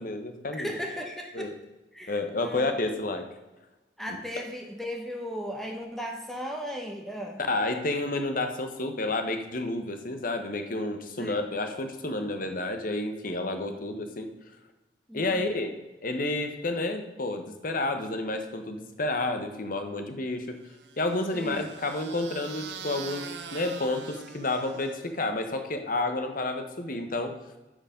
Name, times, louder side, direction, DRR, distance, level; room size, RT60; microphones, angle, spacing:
voice 1, 0.0-0.7 1.3-1.5 2.1-3.3 7.5-14.3 15.1-20.6 21.0-27.4, left 2 dB, 50° left, 7 dB, 1.1 m, -30 dB
voice 2, 0.6-1.5 1.9-2.7 4.0-7.4 11.2-11.4 13.6-13.8 15.1-15.4 21.3-21.6, equal, ahead, 2 dB, 0.9 m, -36 dB
sound 1, 20.7-25.2, right 6 dB, 75° right, 0.8 m, -43 dB
9.8 x 5.1 x 5.1 m, 1.1 s
head